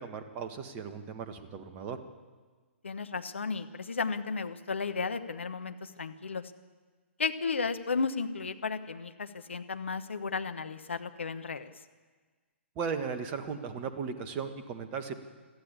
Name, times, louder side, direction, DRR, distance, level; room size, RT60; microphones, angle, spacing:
voice 1, 0.0-2.0 12.8-15.2, right 6 dB, 25° right, 8 dB, 1.7 m, -36 dB
voice 2, 2.8-6.4 7.2-11.7, left 4 dB, 70° left, 9 dB, 1.2 m, -34 dB
22.0 x 14.5 x 8.4 m, 1.4 s
figure-of-eight pair, 120°, 7 cm